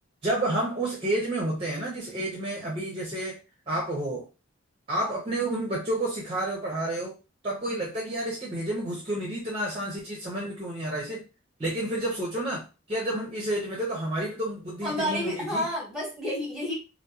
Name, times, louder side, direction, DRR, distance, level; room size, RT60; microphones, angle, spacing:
voice 1, 0.2-3.4 3.7-4.2 4.9-7.1 7.4-11.2 11.6-15.6, right 1 dB, 30° right, -3 dB, 0.6 m, -30 dB
voice 2, 14.8-16.8, equal, ahead, -3 dB, 1.0 m, -30 dB
2.7 x 2.1 x 2.3 m, 0.29 s
head